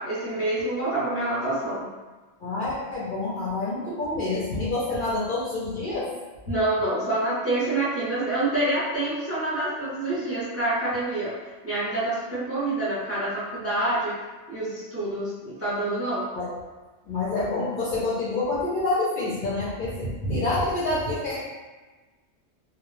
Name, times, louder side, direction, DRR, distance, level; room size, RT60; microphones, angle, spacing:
voice 1, 0.0-1.9 6.5-11.3 11.6-14.1 14.5-16.3, right 2 dB, 20° right, -9 dB, 0.4 m, -27 dB
voice 2, 2.4-6.1 6.5-6.6 16.3-16.5 17.1-21.4, left 2 dB, 60° left, -7 dB, 0.6 m, -27 dB
2.1 x 2.0 x 3.0 m, 1.3 s
omnidirectional pair, 1.2 m